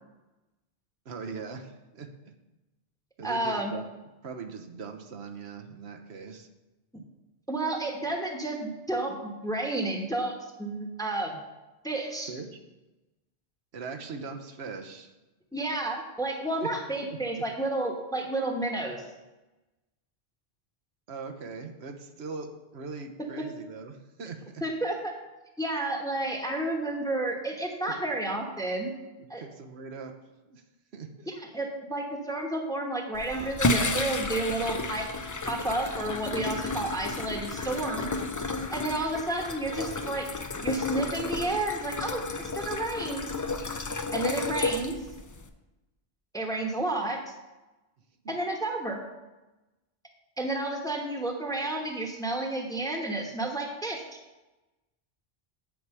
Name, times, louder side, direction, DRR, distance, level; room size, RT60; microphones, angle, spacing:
voice 1, 1.0-2.1 3.2-3.8 4.2-6.5 12.3-12.5 13.7-15.1 16.6-16.7 17.1-17.2 21.1-24.6 29.2-30.1 30.5-30.6 30.9-31.3, right 5 dB, 85° right, 4 dB, 1.2 m, -40 dB
voice 2, 3.2-3.7 7.5-10.3 10.6-11.3 11.8-12.3 15.5-19.0 23.2-23.5 24.6-25.1 25.6-28.9 29.3-29.4 31.3-35.1 35.5-38.1 38.7-40.3 40.6-43.3 44.1-45.0 46.3-47.2 48.3-49.0 50.4-54.0, right 2 dB, 5° left, 2 dB, 1.1 m, -31 dB
sound 1, 33.1-45.5, left 3 dB, 30° left, 0.3 m, -32 dB
Breathing, 33.2-35.0, right 3 dB, 55° right, 1.1 m, -48 dB
8.5 x 4.8 x 6.7 m, 1.1 s
omnidirectional pair, 1.1 m